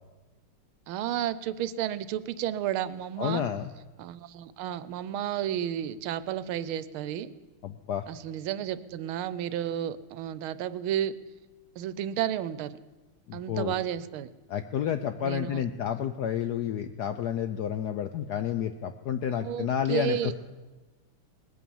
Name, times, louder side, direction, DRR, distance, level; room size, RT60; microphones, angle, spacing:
voice 1, 0.9-3.4 4.0-7.3 8.1-11.2 11.8-12.8 13.3-14.3 15.2-15.6 19.4-20.3, right 11 dB, 80° right, 15 dB, 1.5 m, -32 dB
voice 2, 3.2-3.7 7.6-8.0 13.3-13.7 14.5-20.3, left 9 dB, 75° left, 9 dB, 0.9 m, -30 dB
20.0 x 8.6 x 7.1 m, 1.2 s
omnidirectional pair, 2.3 m